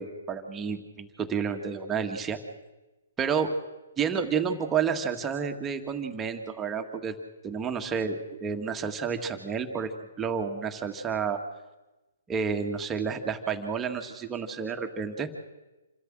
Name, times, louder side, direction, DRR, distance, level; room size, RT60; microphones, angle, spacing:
voice 1, 0.0-2.4 3.2-3.5 4.0-7.1 7.4-9.9 10.2-11.4 12.3-15.3, right 6 dB, 15° right, 5 dB, 1.8 m, -30 dB
27.0 x 13.0 x 7.7 m, 1.1 s
hypercardioid pair, 130°, 0 cm